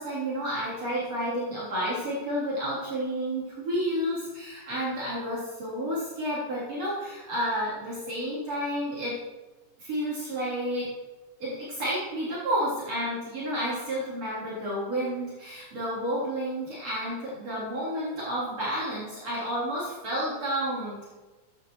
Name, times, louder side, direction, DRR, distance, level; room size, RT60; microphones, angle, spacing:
voice 1, 0.0-9.2 9.8-10.9 11.4-21.1, equal, 50° right, -8 dB, 4.5 m, -31 dB
15.0 x 9.9 x 3.2 m, 1.2 s
omnidirectional pair, 3.6 m